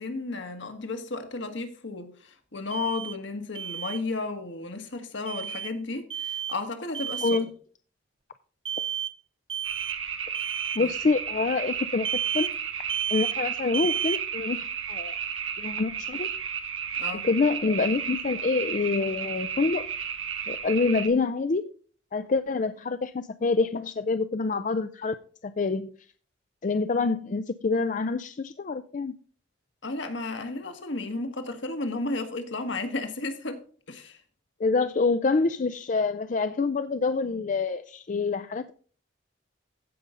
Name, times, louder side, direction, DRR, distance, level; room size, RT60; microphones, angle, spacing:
voice 1, 0.0-7.4 10.8-10.9 17.0-17.3 29.8-33.6 33.9-34.2, left 3 dB, 65° left, 1.5 m, -33 dB
Alarm, 2.7-3.2 3.5-4.0 5.3-5.7 6.1-6.6 6.9-7.4 8.6-9.1 9.5-10.0 10.3-10.8 12.0-12.5 12.9-13.4 13.7-14.2, right 9 dB, 25° right, 0.4 m, -31 dB
sound 1, 9.6-21.1, right 7 dB, 90° right, 1.5 m, -33 dB
voice 2, 10.8-12.1 12.3-12.5 13.1-15.2 15.6-16.3 17.2-19.8 20.5-21.6 22.1-25.2 25.4-25.9 26.6-29.1 34.6-38.7, left 4 dB, 40° left, 0.4 m, -26 dB
15.5 x 5.5 x 3.7 m
head